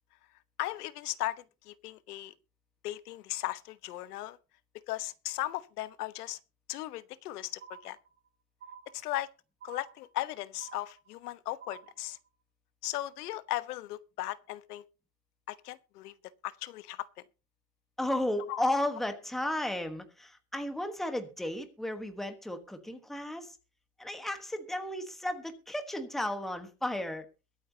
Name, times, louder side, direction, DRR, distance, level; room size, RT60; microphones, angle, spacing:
voice 1, 0.6-2.3 2.8-4.4 4.9-6.4 6.7-8.0 8.9-9.3 9.6-12.2 12.8-14.8 15.5-16.1 16.4-17.1 18.5-18.6, left 16 dB, 90° left, 1.2 m, -37 dB
sound 1, 7.6-8.3 8.6-9.3 9.6-10.3 10.6-11.3 11.6-12.3, right 7 dB, 25° right, 1.4 m, -51 dB
voice 2, 18.0-23.6 24.0-27.3, left 1 dB, ahead, 1.2 m, -34 dB
22.5 x 8.9 x 2.8 m
supercardioid pair, 165°, 45 cm